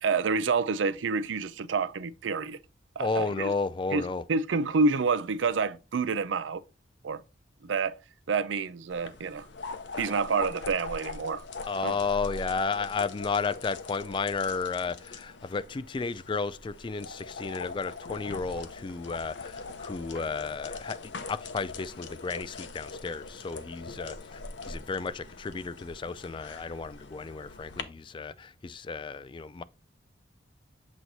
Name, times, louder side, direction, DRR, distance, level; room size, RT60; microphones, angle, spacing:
voice 1, 0.0-2.6 3.0-3.5 3.9-4.0 4.3-6.6 7.0-7.2 7.6-8.0 8.3-9.5 10.0-11.4 11.8-12.0, right 4 dB, 90° right, 0.5 m, -28 dB
voice 2, 3.0-4.2 11.6-29.6, left 4 dB, 25° left, 0.3 m, -33 dB
sound 1, 8.9-27.8, left 3 dB, 75° left, 0.8 m, -42 dB
7.9 x 3.1 x 4.0 m
head